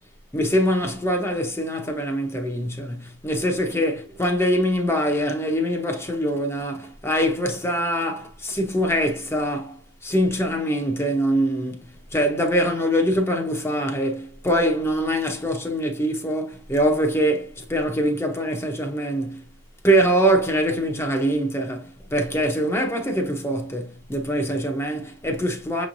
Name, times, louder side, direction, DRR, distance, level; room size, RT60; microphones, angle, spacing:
voice 1, 0.3-19.4 19.8-25.9, equal, 15° left, 0.7 m, -23 dB
6.1 x 3.1 x 2.5 m
head